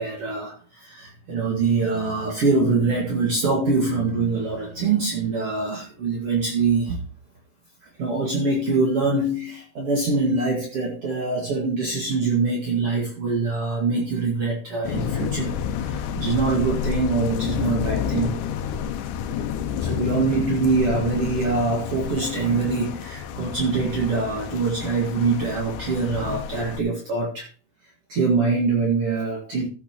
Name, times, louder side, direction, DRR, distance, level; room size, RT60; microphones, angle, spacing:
voice 1, 0.0-7.0 8.0-18.4 19.8-27.5 28.1-29.7, right 4 dB, 50° right, -1 dB, 2.7 m, -24 dB
sound 1, 14.8-26.8, left 8 dB, 80° left, 2.3 m, -29 dB
14.5 x 8.4 x 3.0 m, 0.39 s
omnidirectional pair, 3.6 m